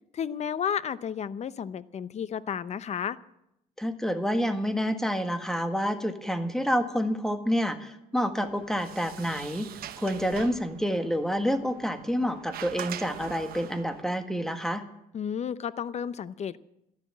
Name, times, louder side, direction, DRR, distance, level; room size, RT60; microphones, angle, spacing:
voice 1, 0.1-3.2 15.1-16.6, left 8 dB, 40° left, 16 dB, 0.7 m, -32 dB
voice 2, 3.8-9.7 10.0-14.8, equal, 5° left, 8 dB, 1.6 m, -28 dB
Sliding door, 8.4-14.0, right 11 dB, 65° right, 1.0 m, -43 dB
13.0 x 11.0 x 9.5 m, 0.82 s
cardioid pair, 110°, 17 cm